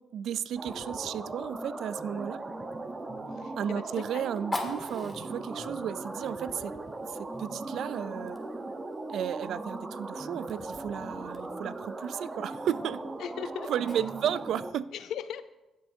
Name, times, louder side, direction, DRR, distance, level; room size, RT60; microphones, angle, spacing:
voice 1, 0.1-2.4 3.6-6.7 7.1-8.4 9.1-13.0 13.7-14.9, right 9 dB, 75° right, 17 dB, 0.3 m, -33 dB
sound 1, 0.6-14.7, right 2 dB, 25° right, 0.9 m, -39 dB
Fire, 1.4-14.7, left 2 dB, 15° left, 1.5 m, -46 dB
voice 2, 3.3-3.8 4.1-4.2 13.2-13.7 14.9-15.4, left 9 dB, 80° left, 13 dB, 0.5 m, -38 dB
15.5 x 7.6 x 2.7 m, 1.0 s
cardioid pair, 90°, 0 cm